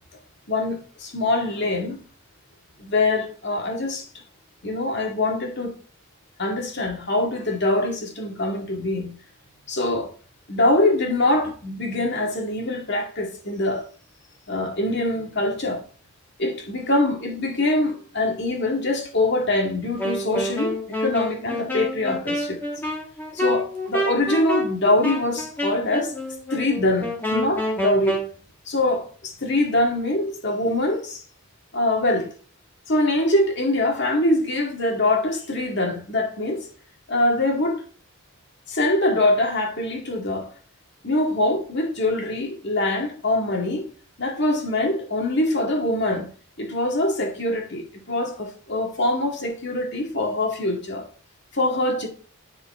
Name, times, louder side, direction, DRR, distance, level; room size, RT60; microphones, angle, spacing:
voice 1, 0.5-2.0 2.8-4.1 4.6-5.8 6.4-9.1 9.7-10.1 10.5-13.8 14.5-15.8 16.4-22.6 23.3-26.1 26.5-28.2 28.7-31.2 31.7-32.3 32.9-36.7 37.1-37.8 38.7-40.5 41.0-43.9 44.2-46.3 46.6-51.1 51.5-52.1, left 2 dB, 50° left, 2.3 m, -23 dB
Wind instrument woodwind instrument, 20.0-28.3, left 1 dB, 10° left, 1.9 m, -28 dB
10.5 x 4.8 x 4.4 m
head